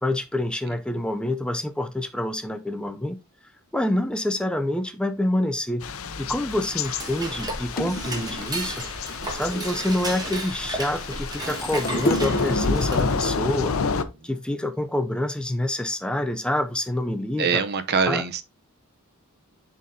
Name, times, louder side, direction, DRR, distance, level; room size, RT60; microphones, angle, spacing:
voice 1, 0.0-3.2 3.7-5.9 6.2-8.9 9.3-13.8 14.2-17.6 18.0-18.2, left 1 dB, 5° left, 0.4 m, -27 dB
Thunder / Rain, 5.8-14.0, left 4 dB, 75° left, 0.6 m, -29 dB
Dishes pots and pans / Cutlery silverware, 6.5-13.3, right 1 dB, 20° right, 1.5 m, -34 dB
sound 1, 7.3-7.4 7.8-8.6 9.1-9.9 10.5-11.1 11.4-13.0 13.8-13.9, equal, 45° left, 0.8 m, -30 dB
voice 2, 17.4-18.4, right 5 dB, 50° right, 0.7 m, -24 dB
11.0 x 3.9 x 2.7 m
head